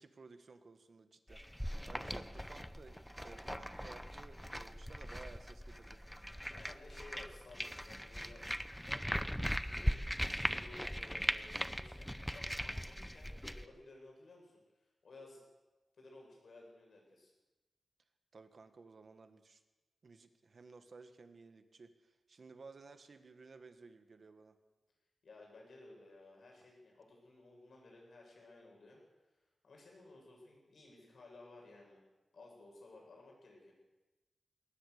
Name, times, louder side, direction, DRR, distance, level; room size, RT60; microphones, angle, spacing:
voice 1, 0.0-6.0 18.3-19.6 20.0-24.6, right 4 dB, 50° right, 9 dB, 1.6 m, -56 dB
sound 1, 1.3-13.7, equal, ahead, 0.6 m, -40 dB
voice 2, 6.5-8.5 8.9-9.9 10.4-14.6 15.0-15.4 15.9-17.3 25.2-29.0 29.6-32.0 32.3-33.7, left 2 dB, 65° left, -1 dB, 7.7 m, -57 dB
21.0 x 19.0 x 6.8 m, 1.1 s
wide cardioid pair, 145°, 0 cm